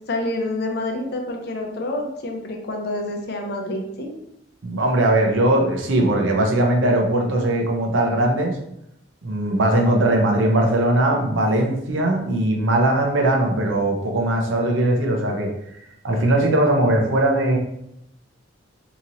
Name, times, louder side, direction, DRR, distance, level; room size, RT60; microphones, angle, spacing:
voice 1, 0.1-4.1, left 2 dB, 55° left, 2 dB, 0.5 m, -27 dB
voice 2, 4.6-8.6 9.2-15.5 16.0-17.6, right 1 dB, 75° right, 1 dB, 0.6 m, -19 dB
2.9 x 2.8 x 2.6 m, 0.79 s
head